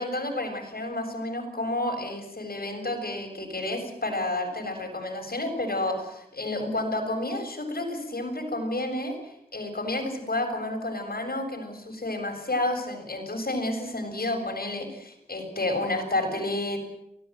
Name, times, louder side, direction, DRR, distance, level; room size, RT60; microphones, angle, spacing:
voice 1, 0.0-9.2 9.5-16.8, left 1 dB, 80° left, 4 dB, 7.2 m, -30 dB
24.0 x 18.5 x 9.4 m, 0.79 s
wide cardioid pair, 40°, 15 cm